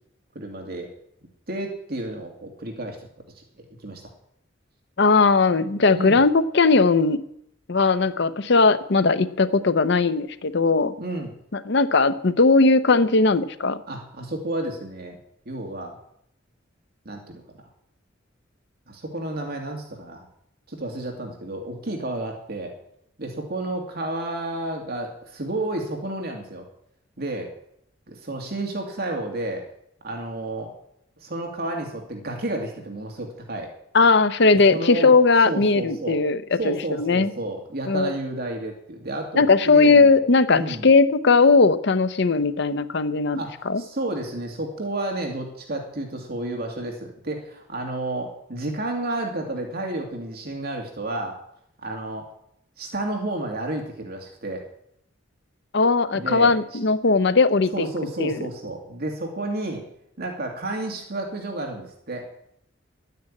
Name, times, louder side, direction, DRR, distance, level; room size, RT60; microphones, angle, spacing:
voice 1, 0.3-0.9 1.5-3.0 3.4-4.0 5.9-6.2 11.0-11.3 13.9-15.2 15.5-16.0 17.1-17.4 18.9-20.3 20.7-22.7 23.2-26.6 27.2-27.5 28.1-29.6 30.0-30.7 31.2-33.7 34.7-35.2 35.5-36.2 36.6-40.2 40.5-40.9 43.3-51.4 51.8-52.3 52.8-54.6 56.1-56.5 57.7-59.8 60.2-62.3, right 2 dB, 55° right, 2 dB, 2.3 m, -31 dB
voice 2, 5.0-7.2 7.7-10.9 11.5-13.8 33.9-37.3 37.9-38.1 39.4-43.4 43.7-43.8 55.7-57.9 58.2-58.4, left 4 dB, 65° left, 12 dB, 0.8 m, -18 dB
11.5 x 9.4 x 8.6 m, 0.73 s
head